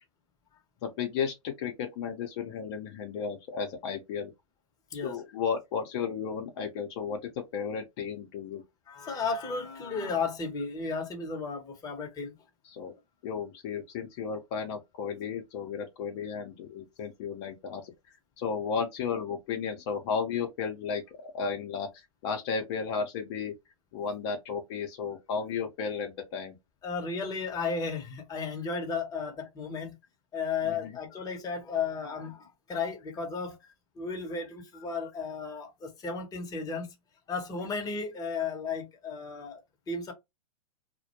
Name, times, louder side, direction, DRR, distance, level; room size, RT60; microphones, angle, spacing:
voice 1, 0.8-4.3 5.0-8.6 12.7-12.9 13.2-17.9 18.4-23.5 23.9-26.6 30.6-30.9, left 6 dB, 50° left, 0.6 m, -34 dB
voice 2, 8.9-12.3 26.8-29.9 30.3-33.6 33.9-36.9 37.3-40.1, left 5 dB, 20° left, 0.8 m, -34 dB
2.1 x 2.1 x 2.8 m
hypercardioid pair, 110°, 18 cm